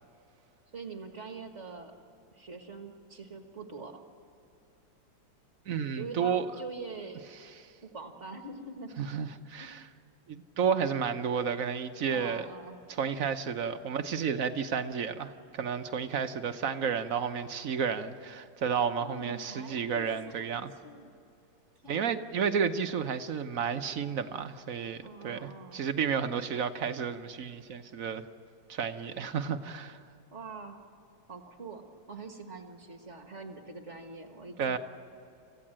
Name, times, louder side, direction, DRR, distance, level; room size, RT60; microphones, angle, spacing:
voice 1, 0.7-1.9 2.3-4.0 5.9-7.2 7.8-9.2 9.6-9.7 12.1-12.8 19.0-21.1 21.8-22.2 25.0-25.8 30.3-30.8 31.3-34.8, right 3 dB, 40° right, 4 dB, 1.7 m, -44 dB
voice 2, 5.7-6.5 9.0-9.9 10.3-12.4 12.9-20.7 21.9-28.2 28.7-30.0 34.6-34.8, right 7 dB, 55° right, 9 dB, 1.0 m, -31 dB
27.0 x 15.5 x 7.5 m, 2.7 s
omnidirectional pair, 2.1 m